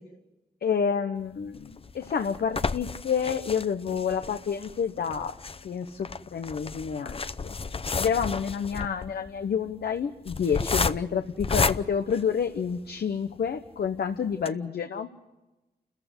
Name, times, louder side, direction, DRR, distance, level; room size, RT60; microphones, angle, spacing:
voice 1, 0.6-5.3 5.6-7.2 7.9-15.1, left 7 dB, 75° left, 7 dB, 1.1 m, -29 dB
sound 1, 1.5-12.9 13.5-13.6 13.9-14.0 14.3-14.5, left 4 dB, 35° left, 0.7 m, -32 dB
29.5 x 14.5 x 8.0 m, 1.0 s
cardioid pair, 65°, 17 cm